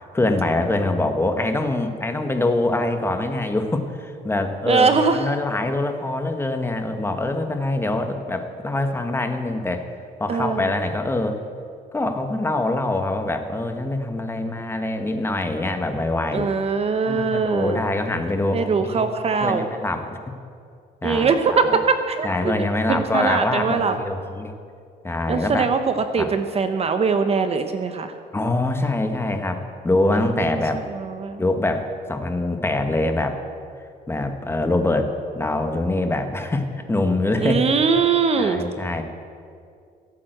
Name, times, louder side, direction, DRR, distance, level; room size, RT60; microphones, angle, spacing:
voice 1, 0.1-9.9 10.2-11.4 11.9-16.5 17.1-19.1 19.4-20.2 21.0-21.8 22.2-24.5 25.0-25.7 26.2-26.3 28.3-30.8 31.4-33.4 34.1-37.6 38.4-39.0, left 2 dB, 15° left, 6 dB, 1.3 m, -24 dB
voice 2, 4.7-5.3 10.3-10.7 16.3-17.8 18.5-19.7 21.0-22.5 22.9-24.0 25.3-28.1 30.1-30.6 30.9-31.4 37.4-38.6, right 5 dB, 35° right, 8 dB, 1.0 m, -22 dB
17.0 x 8.8 x 7.9 m, 2.3 s
cardioid pair, 110°, 17 cm